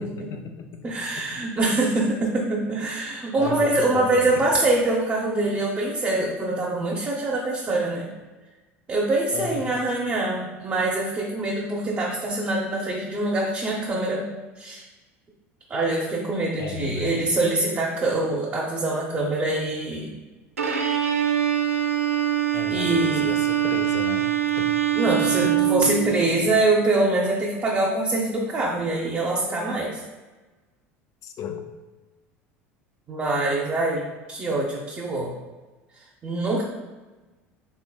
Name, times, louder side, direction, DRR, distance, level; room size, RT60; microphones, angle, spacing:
voice 1, 0.0-1.4 3.4-4.4 9.3-9.7 16.6-17.2 22.5-24.3 24.6-24.8 25.1-25.9 26.3-26.4 31.2-31.7, left 5 dB, 45° left, 5 dB, 0.5 m, -35 dB
voice 2, 0.8-8.1 8.9-14.3 14.6-14.8 15.7-20.1 22.7-23.3 24.9-30.0 33.1-35.3 36.2-36.6, right 2 dB, 30° right, -4 dB, 0.7 m, -24 dB
Bowed string instrument, 20.6-26.5, right 10 dB, 90° right, 0.4 m, -23 dB
3.8 x 3.7 x 2.3 m, 1.2 s
hypercardioid pair, 70°, 7 cm